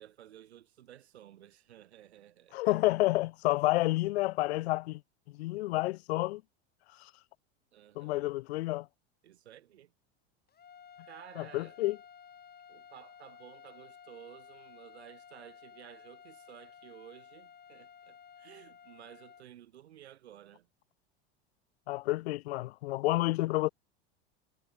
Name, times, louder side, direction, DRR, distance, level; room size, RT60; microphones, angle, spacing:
voice 1, 0.0-2.7 3.7-3.9 7.7-8.3 9.2-9.9 11.0-11.8 12.7-20.7, right 11 dB, 90° right, 2.7 m, -54 dB
voice 2, 2.5-5.0 5.3-6.4 8.0-8.9 11.4-12.0 21.9-23.7, left 19 dB, 80° left, 0.7 m, -29 dB
sound 1, 10.5-19.4, left 7 dB, 30° left, 6.4 m, -54 dB
hypercardioid pair, 95°, 32 cm